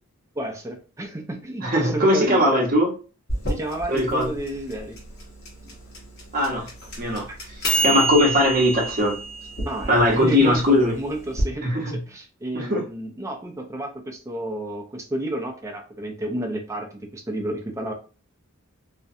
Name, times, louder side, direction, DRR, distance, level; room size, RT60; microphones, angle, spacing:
voice 1, 0.4-2.6 3.5-5.0 7.3-7.4 7.8-8.1 9.6-10.6 10.9-17.9, right 1 dB, 15° right, 2 dB, 0.3 m, -31 dB
voice 2, 1.6-2.9 3.9-4.3 6.3-6.7 7.0-7.3 7.8-9.2 9.9-10.9 11.6-12.0 12.5-12.8, left 1 dB, 40° right, 0 dB, 0.7 m, -20 dB
sound 1, 3.3-11.5, right 2 dB, 45° left, 0.9 m, -28 dB
2.4 x 2.1 x 2.6 m, 0.35 s
head